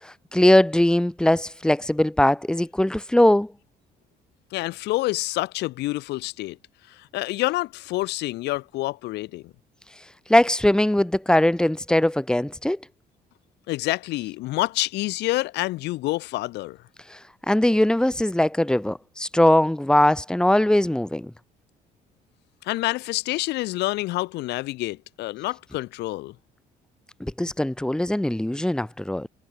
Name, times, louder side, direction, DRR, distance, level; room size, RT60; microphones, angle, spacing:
voice 1, 0.0-3.5 10.3-12.8 17.1-17.2 17.5-21.3 27.2-29.3, left 1 dB, 5° left, 3.3 m, -20 dB
voice 2, 4.5-6.6 7.0-9.5 13.7-16.8 22.6-26.3, left 18 dB, 85° left, 6.2 m, -27 dB
cardioid pair, 110°, 17 cm